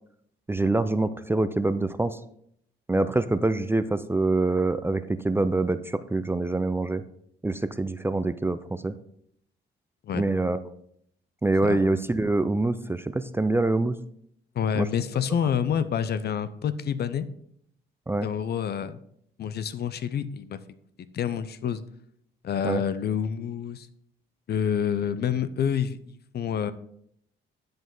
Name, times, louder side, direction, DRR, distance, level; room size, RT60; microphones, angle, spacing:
voice 1, 0.5-2.2 2.9-7.0 7.4-8.9 10.1-10.6 11.4-14.0 14.7-14.9 18.1-18.3 22.6-22.8, right 2 dB, 10° right, 12 dB, 0.4 m, -25 dB
voice 2, 11.6-12.0 14.6-17.3 18.2-19.0 19.4-20.6 21.1-21.8 22.4-23.9 24.5-26.7, left 8 dB, 55° left, 14 dB, 0.6 m, -28 dB
10.0 x 5.2 x 3.8 m, 0.69 s
cardioid pair, 90°, 20 cm